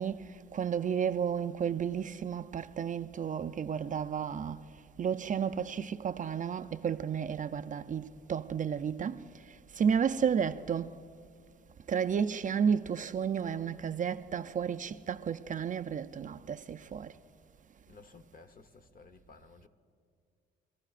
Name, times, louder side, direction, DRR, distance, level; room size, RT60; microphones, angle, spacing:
voice 1, 0.0-4.6 5.0-11.0 11.9-17.1, right 7 dB, 40° right, 0.4 m, -32 dB
voice 2, 17.9-19.7, left 4 dB, 45° left, 1.0 m, -55 dB
25.0 x 14.5 x 2.5 m
cardioid pair, 90°, 20 cm